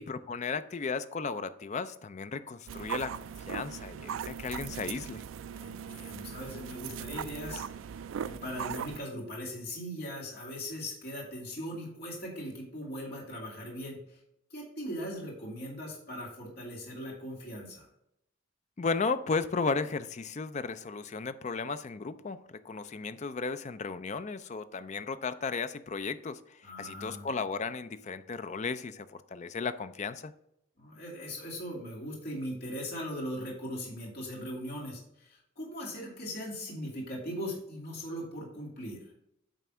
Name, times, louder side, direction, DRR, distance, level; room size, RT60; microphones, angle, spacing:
voice 1, 0.0-5.2 18.8-30.3, left 4 dB, 35° left, 12 dB, 0.4 m, -35 dB
sound 1, 2.7-9.0, right 8 dB, 70° right, 0.3 m, -39 dB
voice 2, 5.5-14.2 14.5-17.9 26.6-27.3 30.8-39.1, equal, 50° left, -4 dB, 2.5 m, -39 dB
9.0 x 3.4 x 6.1 m, 0.78 s
head